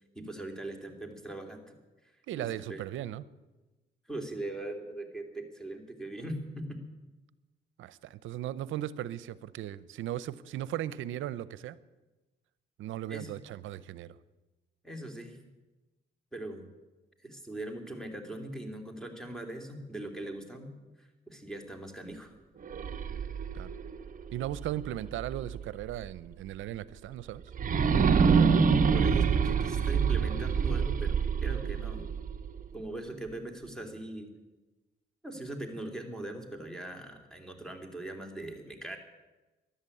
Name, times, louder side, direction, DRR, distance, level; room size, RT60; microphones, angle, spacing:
voice 1, 0.1-1.7 2.0-2.8 4.1-6.8 13.1-13.4 14.8-15.4 16.3-16.7 17.2-20.7 21.0-22.3 28.9-31.1 31.4-32.1 32.7-34.3 35.2-39.0, right 1 dB, 5° left, 4 dB, 2.9 m, -40 dB
voice 2, 2.3-3.2 7.8-11.8 12.8-14.2 23.5-23.7 24.3-27.4, right 12 dB, 80° right, 17 dB, 0.7 m, -37 dB
sound 1, 22.6-25.6 26.0-26.1 27.5-32.6, right 6 dB, 45° right, 0.9 m, -26 dB
13.5 x 11.5 x 8.5 m, 1.1 s
cardioid pair, 90°, 20 cm